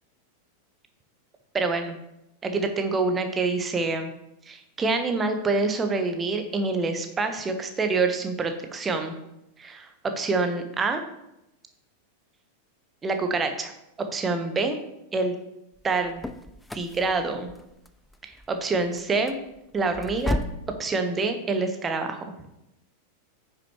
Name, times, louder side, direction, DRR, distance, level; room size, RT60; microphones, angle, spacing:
voice 1, 1.5-2.0 2.4-4.1 4.5-9.1 9.6-11.0 13.0-13.7 14.1-14.8 15.1-15.4 15.8-16.3 16.7-17.5 18.2-19.4 19.7-20.4 20.8-22.3, right 3 dB, 20° right, 6 dB, 1.0 m, -26 dB
sound 1, 15.7-20.7, left 1 dB, 5° left, 0.5 m, -35 dB
9.6 x 6.2 x 3.0 m, 0.86 s
figure-of-eight pair, 90°, 0 cm